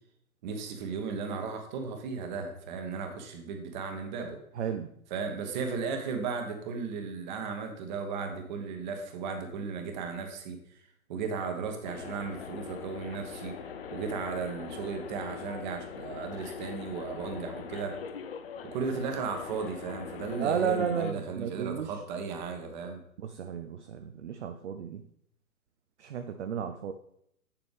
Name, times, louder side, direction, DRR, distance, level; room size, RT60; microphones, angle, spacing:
voice 1, 0.4-4.4 5.1-10.8 11.1-13.5 13.9-17.9 18.6-23.0, right 5 dB, 30° right, 5 dB, 1.2 m, -35 dB
voice 2, 4.5-4.9 20.4-22.0 23.2-25.0 26.0-26.9, right 7 dB, 55° right, 8 dB, 0.6 m, -33 dB
sound 1, 11.8-21.1, left 7 dB, 45° left, 0.5 m, -42 dB
7.5 x 7.0 x 3.4 m, 0.73 s
figure-of-eight pair, 125°, 43 cm